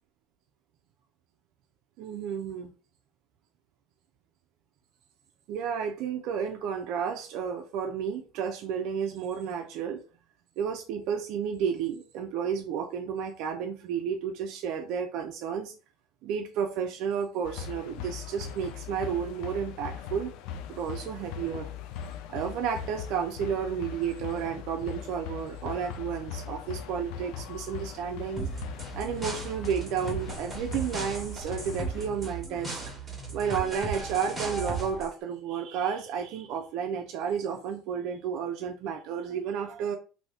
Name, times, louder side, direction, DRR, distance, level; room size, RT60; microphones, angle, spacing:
voice 1, 2.0-2.7 5.5-10.0 10.6-15.7 16.2-20.3 20.7-21.7 22.3-28.5 28.9-32.8 33.3-40.0, right 7 dB, 65° right, 0.4 m, -32 dB
sound 1, 17.4-32.1, left 8 dB, 70° left, 0.3 m, -40 dB
sound 2, 28.4-35.1, right 3 dB, 5° right, 1.2 m, -36 dB
2.7 x 2.6 x 3.4 m
cardioid pair, 135°, 0 cm